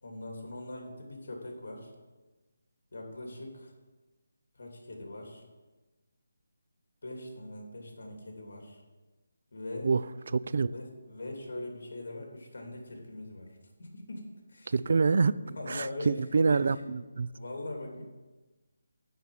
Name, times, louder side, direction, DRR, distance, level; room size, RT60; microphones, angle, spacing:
voice 1, 0.0-1.9 2.9-3.7 4.5-5.4 7.0-8.8 9.5-9.9 10.7-14.7 15.0-15.2 15.4-16.8 17.3-18.0, left 1 dB, 65° left, 1 dB, 2.8 m, -42 dB
voice 2, 10.3-10.7 14.7-15.3 15.7-17.3, right 4 dB, 55° right, 17 dB, 0.3 m, -26 dB
10.0 x 4.6 x 7.0 m, 1.2 s
hypercardioid pair, 170°, 0 cm